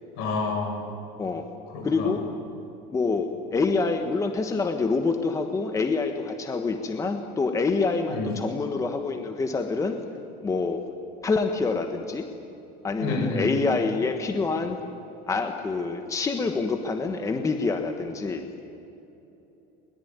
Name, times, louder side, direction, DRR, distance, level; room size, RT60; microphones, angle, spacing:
voice 1, 0.2-0.8 1.7-2.2 8.1-8.3 13.0-13.5, left 3 dB, 70° left, 4 dB, 6.2 m, -28 dB
voice 2, 1.8-2.2 2.9-10.0 10.4-10.8 11.2-12.3 12.8-14.8 15.3-18.4, left 4 dB, 15° left, 6 dB, 1.3 m, -26 dB
22.0 x 21.5 x 9.5 m, 2.9 s
cardioid pair, 155°, 18 cm